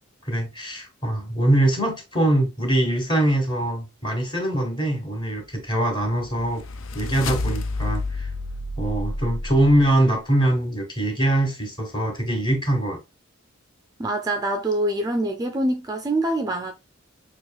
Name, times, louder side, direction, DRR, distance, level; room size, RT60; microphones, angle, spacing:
voice 1, 0.2-6.6 6.9-8.3 8.8-13.0, right 1 dB, 25° left, 1.3 m, -23 dB
sound 1, 5.9-10.0, left 2 dB, 80° left, 0.5 m, -30 dB
voice 2, 14.0-16.7, right 1 dB, 20° right, 0.3 m, -25 dB
5.8 x 2.9 x 2.2 m
head